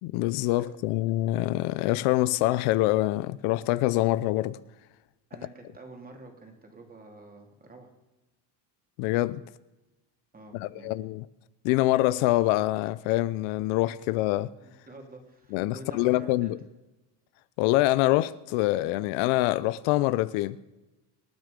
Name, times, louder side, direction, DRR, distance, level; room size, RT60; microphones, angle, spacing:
voice 1, 0.0-4.6 9.0-9.4 10.5-11.2 11.6-14.5 15.5-16.6 17.6-20.6, left 17 dB, 80° left, 0.7 m, -25 dB
voice 2, 5.3-7.9 10.3-11.2 14.6-16.6, right 2 dB, 20° right, 2.8 m, -48 dB
26.0 x 9.5 x 5.2 m
cardioid pair, 145°, 48 cm